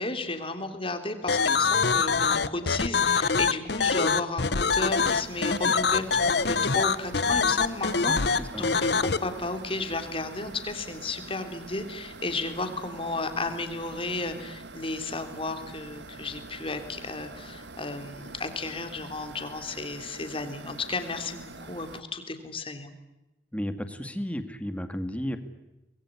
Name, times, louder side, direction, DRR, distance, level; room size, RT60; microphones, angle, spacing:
voice 1, 0.0-22.9, left 3 dB, 30° left, 7 dB, 3.5 m, -33 dB
sound 1, 1.3-9.2, left 5 dB, 65° left, 1.1 m, -24 dB
sound 2, 4.6-22.0, right 3 dB, 80° right, 1.7 m, -44 dB
voice 2, 8.4-8.7 23.5-25.4, equal, 10° left, 8 dB, 2.3 m, -33 dB
25.0 x 21.5 x 9.9 m, 0.99 s
head